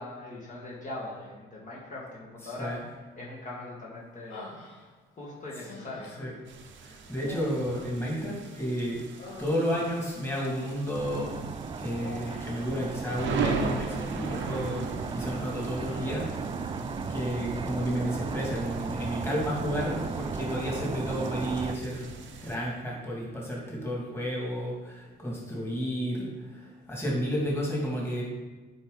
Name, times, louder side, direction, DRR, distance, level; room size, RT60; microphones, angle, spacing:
voice 1, 0.0-2.7 3.2-4.5 5.2-6.2, left 2 dB, 40° left, -5 dB, 1.9 m, -40 dB
voice 2, 2.4-2.8 6.2-6.3 6.8-9.0 9.4-11.3 11.8-16.3 16.7-16.8 17.1-22.1 22.4-28.2, equal, 10° left, -4 dB, 2.4 m, -32 dB
Human voice, 4.3-5.2 5.7-6.4 7.2-8.6 9.0-10.0 12.0-12.7 13.7-14.8 15.1-15.3 15.8-16.5, left 2 dB, 85° left, 1.3 m, -47 dB
sound 1, 6.5-22.6, right 5 dB, 70° right, 0.9 m, -39 dB
sound 2, 11.0-21.8, right 5 dB, 25° right, 0.4 m, -36 dB
8.7 x 4.7 x 4.0 m, 1.2 s
cardioid pair, 90°, 20 cm